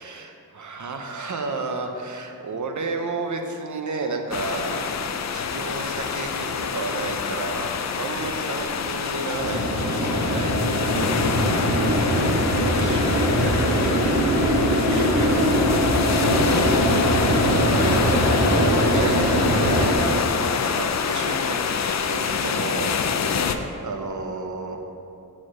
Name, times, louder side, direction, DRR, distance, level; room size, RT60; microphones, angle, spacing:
voice 1, 0.0-4.9 5.3-11.2 12.7-14.4 14.9-15.8 16.1-16.9 17.7-21.7 22.1-23.0 23.4-24.8, right 3 dB, 50° right, 4 dB, 0.7 m, -32 dB
sound 1, 4.3-23.6, left 6 dB, 50° left, 0.4 m, -26 dB
sound 2, 9.4-19.9, equal, 75° right, 1.7 m, -22 dB
7.2 x 4.3 x 6.0 m, 2.7 s
wide cardioid pair, 135°, 37 cm